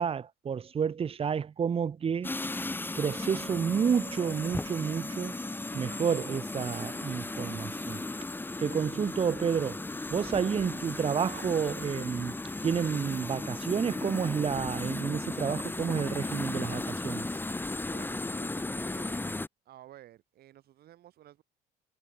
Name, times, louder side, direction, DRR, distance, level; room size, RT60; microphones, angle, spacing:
voice 1, 0.0-2.3 3.0-5.3 5.7-8.0 8.6-12.3 12.6-17.3, right 7 dB, 35° right, 1.3 m, -30 dB
sound 1, 2.2-19.5, left 2 dB, 10° left, 2.3 m, -36 dB
voice 2, 17.8-19.4 19.6-21.4, right 13 dB, 65° right, 5.2 m, -53 dB
cardioid pair, 110°, 17 cm